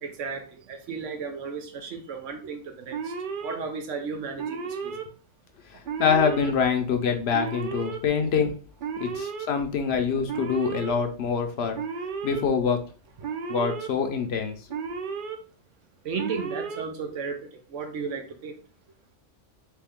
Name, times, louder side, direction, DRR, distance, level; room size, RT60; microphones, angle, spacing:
voice 1, 0.0-3.1 3.4-5.1 13.2-13.4 16.0-18.6, right 5 dB, 85° right, 5 dB, 1.1 m, -34 dB
Alarm, 2.9-3.6 4.4-5.0 5.8-6.5 7.3-8.0 8.8-9.5 10.3-10.9 11.7-12.4 13.2-13.9 14.7-15.4 16.2-16.8, right 5 dB, 55° right, 0.6 m, -33 dB
voice 2, 6.0-8.5 9.0-11.8 12.2-12.8 13.5-14.6, left 6 dB, 65° left, 6 dB, 0.8 m, -25 dB
3.3 x 3.2 x 3.5 m, 0.39 s
omnidirectional pair, 1.2 m